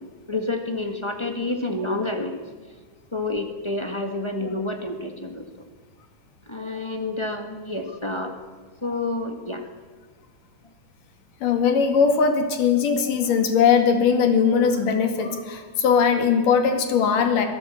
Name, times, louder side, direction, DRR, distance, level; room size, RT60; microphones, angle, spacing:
voice 1, 0.0-2.4 3.1-5.5 6.5-8.4 8.8-9.6 12.9-13.1 14.4-14.7, left 2 dB, 15° left, 4 dB, 1.3 m, -29 dB
voice 2, 11.4-17.5, left 6 dB, 85° left, 6 dB, 3.7 m, -20 dB
25.0 x 18.0 x 8.6 m, 1.4 s
omnidirectional pair, 3.6 m